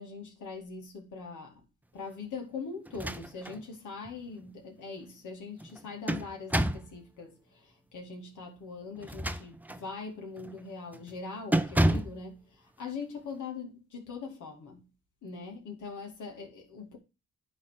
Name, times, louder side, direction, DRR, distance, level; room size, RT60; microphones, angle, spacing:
voice 1, 0.0-1.6 1.9-14.9 15.2-17.0, left 4 dB, 70° left, 2.6 m, -42 dB
sound 1, 2.9-3.6 4.0-4.1 5.6-6.9 9.0-9.9 10.4-10.6 10.9-11.1 11.5-12.2, right 1 dB, 5° right, 0.7 m, -29 dB
9.9 x 3.7 x 6.6 m
supercardioid pair, 60°, 31 cm